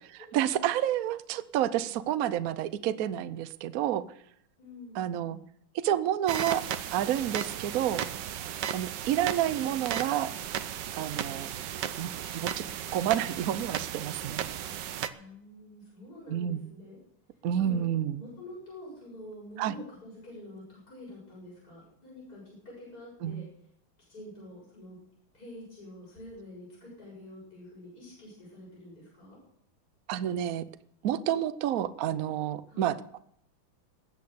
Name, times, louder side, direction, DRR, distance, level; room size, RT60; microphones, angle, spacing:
voice 1, 0.3-4.0 5.0-5.4 5.7-6.6 6.9-8.0 8.7-10.3 10.9-11.5 12.0-12.1 12.3-12.6 12.9-14.4 16.3-16.7 17.4-18.2 19.6-19.8 23.2-23.4 30.1-30.6 31.0-33.2, right 11 dB, 85° right, 15 dB, 0.7 m, -29 dB
voice 2, 4.6-5.5 11.1-11.5 15.1-17.0 17.6-17.9 18.1-23.4 24.1-25.0 25.3-29.4 32.7-33.0, left 1 dB, 45° left, -6 dB, 7.9 m, -47 dB
sound 1, 6.3-15.1, right 9 dB, 65° right, 1.3 m, -35 dB
20.5 x 8.5 x 6.9 m, 0.74 s
omnidirectional pair, 2.4 m